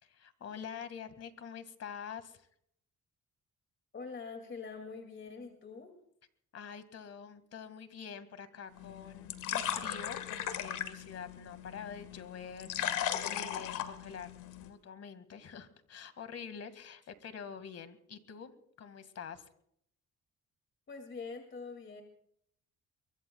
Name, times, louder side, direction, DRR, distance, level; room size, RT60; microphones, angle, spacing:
voice 1, 0.0-2.5 6.5-19.5, left 7 dB, 55° left, 11 dB, 1.9 m, -46 dB
voice 2, 3.9-5.9 20.9-22.0, left 4 dB, 40° left, 5 dB, 2.4 m, -44 dB
sound 1, 8.7-14.7, left 10 dB, 85° left, 1.7 m, -38 dB
23.5 x 22.5 x 2.3 m, 0.70 s
cardioid pair, 90°, 30 cm